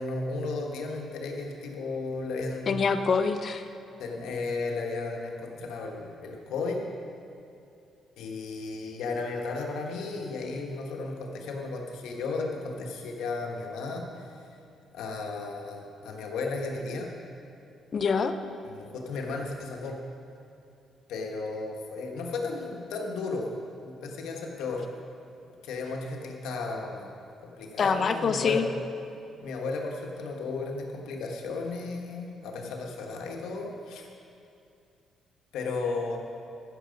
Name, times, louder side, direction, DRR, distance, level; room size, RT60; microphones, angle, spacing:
voice 1, 0.0-2.7 4.0-6.9 8.2-14.5 14.9-17.1 18.7-20.0 21.1-23.5 23.8-24.8 25.6-27.1 27.4-28.7 29.4-34.1 35.5-36.2, left 3 dB, 85° left, 1 dB, 1.4 m, -34 dB
voice 2, 2.7-3.6 17.9-18.3 27.8-28.7, left 5 dB, 50° left, 9 dB, 0.7 m, -25 dB
14.5 x 6.8 x 5.2 m, 2.6 s
cardioid pair, 90°, 0 cm